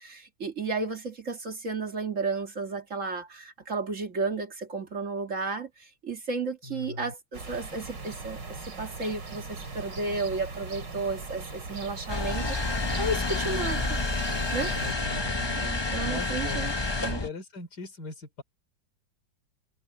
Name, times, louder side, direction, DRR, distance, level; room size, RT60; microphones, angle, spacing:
voice 1, 0.0-12.6 13.0-14.0 14.5-14.8 15.6-16.7 17.0-17.2, right 3 dB, 45° right, 2.0 m, -33 dB
voice 2, 6.6-7.1 14.7-15.6 16.0-16.7 17.0-18.4, left 3 dB, 65° left, 3.7 m, -40 dB
sound 1, 7.3-14.9, right 3 dB, 75° right, 3.9 m, -40 dB
sound 2, 12.1-17.3, left 3 dB, 25° left, 0.6 m, -29 dB
omnidirectional pair, 1.9 m